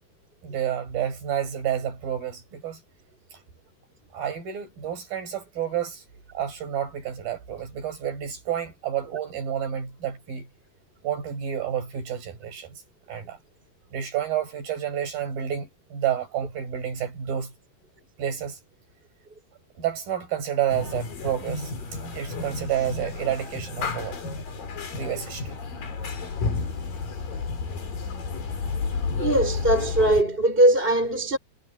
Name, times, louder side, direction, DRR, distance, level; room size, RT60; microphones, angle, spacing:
voice 1, 0.4-2.8 4.1-6.0 6.3-10.5 11.0-12.8 13.1-13.4 13.9-17.5 18.2-18.6 19.8-21.7 22.1-24.2 25.0-25.5, right 9 dB, 70° right, 7.5 m, -29 dB
sound 1, 20.7-30.2, left 4 dB, 65° left, 5.8 m, -31 dB
voice 2, 29.2-31.4, right 1 dB, 15° right, 5.2 m, -20 dB
omnidirectional pair, 4.3 m